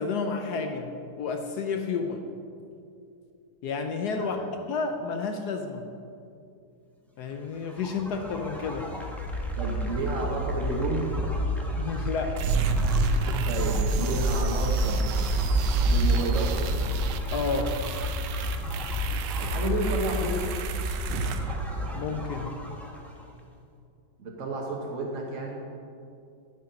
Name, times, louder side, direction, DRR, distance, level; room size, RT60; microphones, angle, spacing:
voice 1, 0.0-2.2 3.6-4.4 4.7-5.9 7.2-8.9 11.8-12.4 17.3-17.8 21.9-22.6, left 5 dB, 70° left, 5 dB, 1.1 m, -31 dB
voice 2, 4.1-4.5 9.6-11.0 13.4-15.0 15.8-16.7 19.4-20.5 24.2-25.6, right 2 dB, 45° right, -1 dB, 1.4 m, -31 dB
sound 1, 7.5-23.2, left 1 dB, ahead, 0.7 m, -31 dB
sound 2, 12.4-22.3, right 4 dB, 75° right, 1.2 m, -29 dB
12.5 x 5.7 x 5.2 m, 2.5 s
omnidirectional pair, 2.1 m